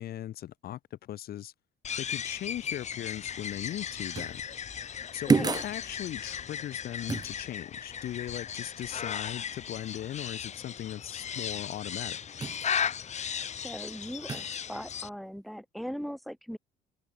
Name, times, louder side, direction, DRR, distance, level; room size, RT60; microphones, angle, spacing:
voice 1, 0.0-1.5 2.0-4.4 5.1-12.2, left 12 dB, 65° left, 3.5 m, -38 dB
sound 1, 1.8-15.1, left 8 dB, 40° left, 3.7 m, -36 dB
sound 2, 4.1-4.4 5.3-5.8 7.1-7.3 12.4-12.7 14.3-14.6, right 5 dB, 25° right, 0.9 m, -28 dB
voice 2, 5.3-5.6 13.6-16.6, equal, ahead, 1.8 m, -39 dB
cardioid pair, 110°, 17 cm